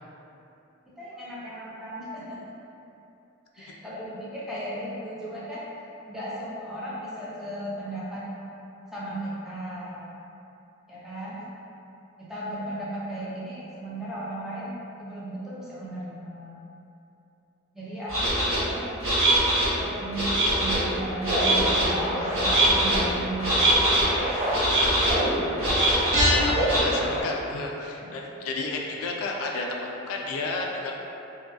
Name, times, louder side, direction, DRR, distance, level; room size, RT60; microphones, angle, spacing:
voice 1, 0.9-2.5 3.5-5.6 6.1-8.3 8.9-10.0 10.9-11.4 12.2-16.6 17.7-18.9 19.8-23.6, right 1 dB, ahead, -9 dB, 0.4 m, -36 dB
sound 1, 18.1-18.6 19.0-19.7 20.1-20.8 21.2-21.9 22.3-23.0 23.4-24.0 24.5-25.1 25.6-26.3 26.6-26.8, right 1 dB, 80° right, 1.1 m, -22 dB
sound 2, 20.7-27.2, equal, 40° right, 0.6 m, -29 dB
voice 2, 26.3-31.0, left 3 dB, 85° left, -1 dB, 0.3 m, -32 dB
2.6 x 2.1 x 2.3 m, 2.9 s
head